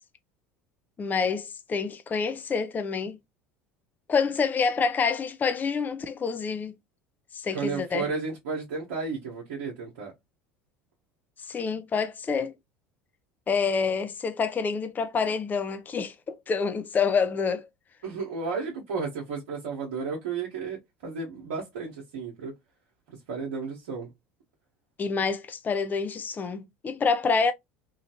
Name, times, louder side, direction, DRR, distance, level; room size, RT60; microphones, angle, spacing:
voice 1, 1.0-3.2 4.1-6.7 7.3-8.1 11.5-12.5 13.5-17.7 25.0-27.5, left 5 dB, 25° left, 0.5 m, -27 dB
voice 2, 7.5-10.1 18.0-22.5 23.3-24.1, right 5 dB, 70° right, 0.9 m, -33 dB
3.0 x 2.4 x 2.8 m
hypercardioid pair, 75°, 7 cm